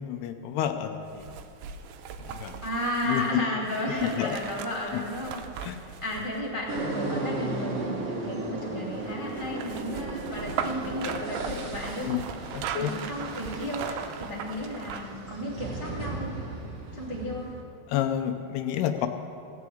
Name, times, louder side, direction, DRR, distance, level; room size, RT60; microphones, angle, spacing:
voice 1, 0.0-1.4 2.3-2.6 3.0-3.5 4.0-4.4 4.9-5.0 5.6-5.8 12.0-12.2 12.5-12.9 17.9-19.1, left 11 dB, 80° left, 7 dB, 2.6 m, -29 dB
sound 1, 1.1-7.3 8.9-15.2 15.6-15.7, right 7 dB, 80° right, 2.6 m, -38 dB
voice 2, 2.6-5.3 6.0-12.1 12.8-16.3 16.9-17.5, equal, 15° right, -6 dB, 1.0 m, -33 dB
sound 2, 6.7-17.6, right 2 dB, 60° right, 1.5 m, -36 dB
16.0 x 6.2 x 8.4 m, 2.6 s
omnidirectional pair, 4.7 m